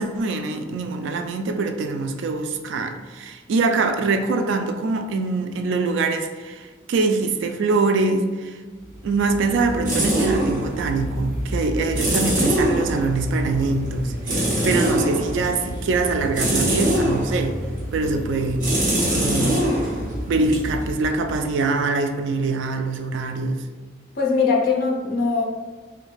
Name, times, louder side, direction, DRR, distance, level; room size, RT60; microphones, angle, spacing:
voice 1, 0.0-8.6 9.0-14.4 14.6-17.6 17.9-18.6 19.0-19.6 20.3-23.6, right 3 dB, 70° right, 7 dB, 0.3 m, -24 dB
sound 1, 8.9-21.6, right 1 dB, 45° right, 0.8 m, -24 dB
voice 2, 24.1-25.4, left 4 dB, 50° left, -1 dB, 0.5 m, -21 dB
2.5 x 2.2 x 3.9 m, 1.4 s
head